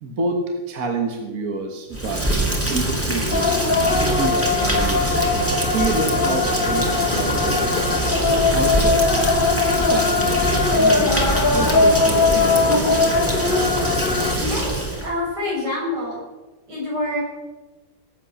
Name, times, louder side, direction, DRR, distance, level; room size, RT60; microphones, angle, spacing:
voice 1, 0.0-2.3 2.7-5.2 5.7-7.7 8.5-9.2 9.8-11.2 11.5-13.1, right 3 dB, 60° right, 3 dB, 1.8 m, -28 dB
Rain, 1.9-15.1, right 1 dB, 10° right, 2.2 m, -23 dB
sound 1, 3.3-14.4, left 4 dB, 35° left, 1.0 m, -20 dB
voice 2, 14.4-16.2 16.7-17.2, left 2 dB, 90° right, -4 dB, 6.8 m, -26 dB
19.0 x 8.4 x 6.4 m, 1.1 s
omnidirectional pair, 1.8 m